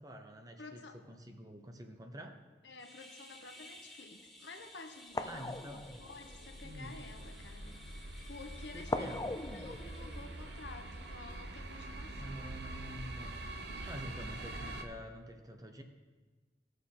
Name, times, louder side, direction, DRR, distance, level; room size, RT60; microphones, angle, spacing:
voice 1, 0.0-2.4 5.2-6.0 6.6-7.0 8.7-9.3 12.2-13.6 13.8-15.8, equal, 20° right, 5 dB, 0.8 m, -47 dB
voice 2, 0.6-1.0 2.6-12.4, left 3 dB, 80° left, 5 dB, 1.0 m, -51 dB
sound 1, 2.8-11.2, left 1 dB, ahead, 1.7 m, -56 dB
sound 2, 3.6-3.8 4.6-4.7 5.1-6.8 8.9-11.4 11.7-11.9, left 2 dB, 20° left, 0.4 m, -41 dB
sound 3, 5.1-14.8, right 2 dB, 70° right, 0.9 m, -45 dB
17.5 x 6.5 x 3.8 m, 1.3 s
head